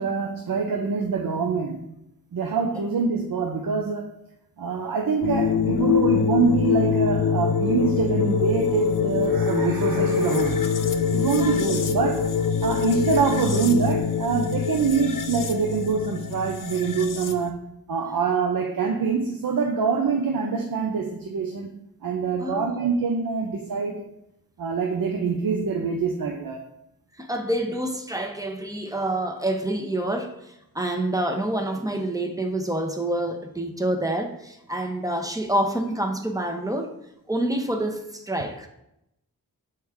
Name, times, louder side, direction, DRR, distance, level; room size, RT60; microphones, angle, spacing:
voice 1, 0.0-1.9 2.3-4.2 4.6-12.3 12.6-17.5 17.9-21.7 22.0-24.1 24.6-26.6, right 5 dB, 70° right, 0.7 m, -25 dB
sound 1, 5.2-17.5, left 6 dB, 60° left, 0.6 m, -24 dB
voice 2, 22.4-22.7 27.2-36.9 37.3-38.7, right 1 dB, 10° right, 0.9 m, -27 dB
6.3 x 4.6 x 3.5 m
cardioid pair, 45°, 36 cm